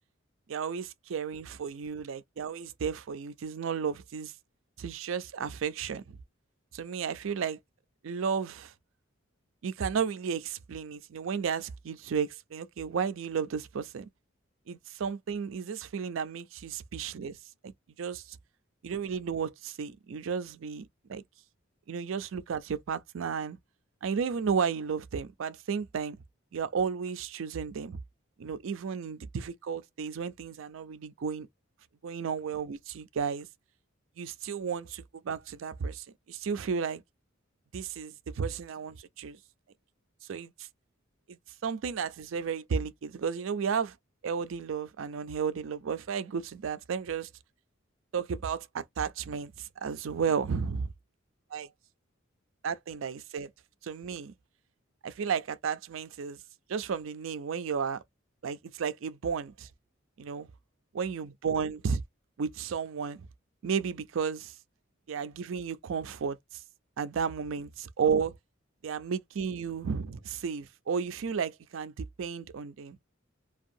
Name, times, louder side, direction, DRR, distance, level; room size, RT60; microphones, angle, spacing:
voice 1, 0.5-4.3 4.8-6.2 6.7-7.6 8.0-8.7 9.6-14.1 14.7-17.4 17.6-17.7 18.0-18.4 18.8-21.2 21.9-23.6 24.0-26.2 26.5-28.0 28.4-31.5 32.0-33.5 34.2-37.0 37.7-39.4 40.3-40.7 41.3-44.0 44.2-47.3 48.1-50.9 51.5-51.7 52.6-53.5 53.8-54.3 55.0-56.4 56.7-58.0 58.4-59.7 60.2-60.5 60.9-62.0 62.4-63.3 63.6-64.5 65.1-66.6 67.0-68.4 68.8-73.0, right 6 dB, 70° right, 0.4 m, -33 dB
2.5 x 2.3 x 2.6 m
head